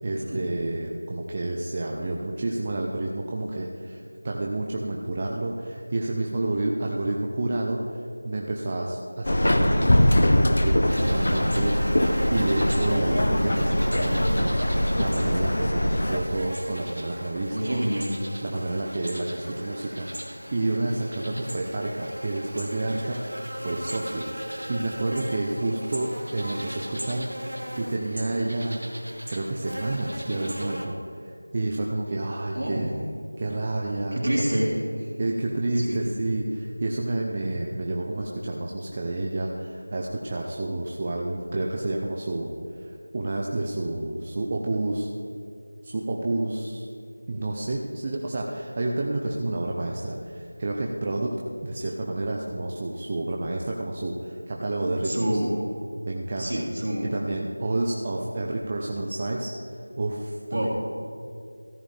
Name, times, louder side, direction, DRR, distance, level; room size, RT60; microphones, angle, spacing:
voice 1, 0.0-14.6 15.0-17.8 18.4-28.8 29.3-32.9 33.4-34.2 35.2-42.5 42.8-45.1 45.8-46.9 47.3-51.3 51.6-55.3 56.0-56.6 57.1-59.5 60.0-60.7, right 2 dB, 25° right, -1 dB, 0.5 m, -29 dB
Subway metro underground, 9.2-16.2, left 1 dB, 50° left, 0.8 m, -22 dB
sound 1, 10.9-30.9, equal, 90° right, 1.5 m, -37 dB
voice 2, 17.5-18.1 32.5-32.8 34.1-34.7 35.0-35.1 35.8-36.0 55.0-55.5 56.4-57.1 60.5-60.7, right 1 dB, 65° right, -4 dB, 3.0 m, -27 dB
14.0 x 8.9 x 3.4 m, 2.4 s
figure-of-eight pair, 175°, 0 cm